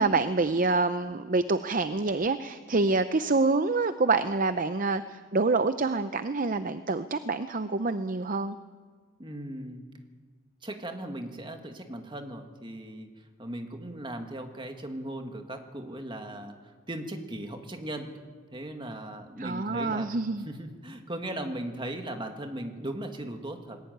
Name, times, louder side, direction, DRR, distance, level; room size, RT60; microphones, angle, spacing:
voice 1, 0.0-8.6 19.4-20.5, right 3 dB, 40° right, 11 dB, 0.6 m, -26 dB
voice 2, 9.2-9.8 10.6-18.1 18.5-20.1 20.4-23.8, right 1 dB, 25° right, 5 dB, 2.0 m, -38 dB
20.0 x 17.5 x 9.3 m, 1.5 s
head